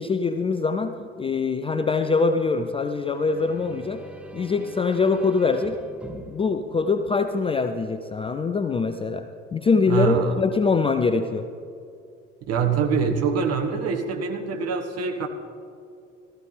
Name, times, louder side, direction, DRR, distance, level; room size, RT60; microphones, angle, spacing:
voice 1, 0.0-4.0 4.3-5.8 6.1-11.5, left 4 dB, 15° left, 8 dB, 0.4 m, -23 dB
sound 1, 2.9-7.7, right 1 dB, 5° right, 0.8 m, -43 dB
voice 2, 9.9-10.4 12.5-15.3, right 6 dB, 40° right, 5 dB, 1.4 m, -24 dB
15.5 x 14.5 x 3.4 m, 2.5 s
figure-of-eight pair, 55°, 37 cm